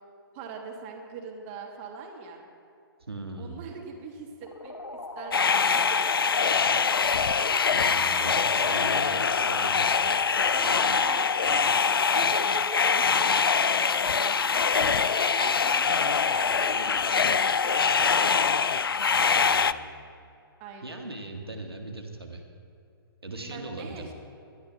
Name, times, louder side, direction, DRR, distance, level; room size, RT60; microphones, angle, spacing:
voice 1, 0.3-2.5 3.4-6.0 10.5-11.8 12.1-18.1 20.6-21.0 23.3-24.1, right 5 dB, 30° right, 1 dB, 1.6 m, -42 dB
voice 2, 3.1-3.6 7.8-10.0 19.3-19.9 20.8-22.4 23.2-24.1, right 2 dB, 80° right, 3 dB, 1.7 m, -39 dB
sound 1, 4.4-11.8, left 2 dB, 85° left, 1.0 m, -40 dB
sound 2, 5.3-19.7, left 5 dB, 70° left, 0.4 m, -24 dB
19.5 x 12.0 x 3.4 m, 2.6 s
figure-of-eight pair, 125°, 13 cm